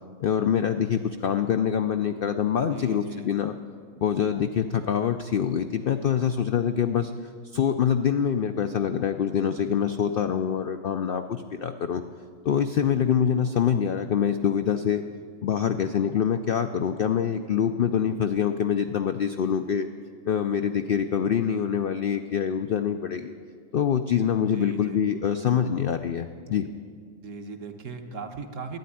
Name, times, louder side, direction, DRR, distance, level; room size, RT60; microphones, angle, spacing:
voice 1, 0.2-3.6 4.0-7.1 7.5-12.0 12.4-15.0 15.4-19.9 20.3-23.3 23.7-26.6, left 8 dB, 75° left, 7 dB, 0.5 m, -25 dB
voice 2, 2.7-3.3 24.5-25.0 27.2-28.8, right 4 dB, 60° right, 5 dB, 1.4 m, -38 dB
12.0 x 9.3 x 9.7 m, 2.1 s
omnidirectional pair, 1.5 m